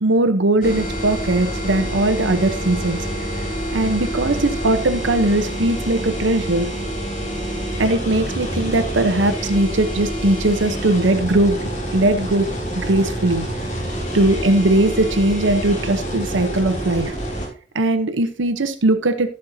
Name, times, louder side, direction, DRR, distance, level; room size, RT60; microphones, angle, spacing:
voice 1, 0.0-3.0 3.7-6.7 7.8-11.6 11.9-12.5 12.7-13.5 14.1-17.1 17.7-19.3, right 2 dB, 85° right, 8 dB, 0.9 m, -19 dB
sound 1, 0.6-17.5, right 1 dB, 45° left, 4.1 m, -27 dB
14.5 x 6.5 x 2.7 m, 0.38 s
head